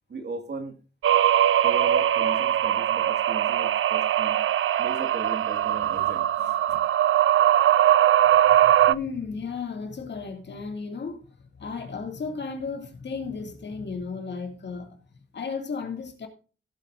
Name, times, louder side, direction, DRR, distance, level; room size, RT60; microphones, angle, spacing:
voice 1, 0.1-0.8 1.6-4.4 4.8-6.8, right 3 dB, 55° right, 2.1 m, -37 dB
sound 1, 1.0-8.9, right 11 dB, 80° right, 0.4 m, -21 dB
voice 2, 8.4-15.0 15.3-16.3, left 5 dB, 60° left, 2.5 m, -34 dB
16.5 x 8.6 x 2.6 m
wide cardioid pair, 130°, 20 cm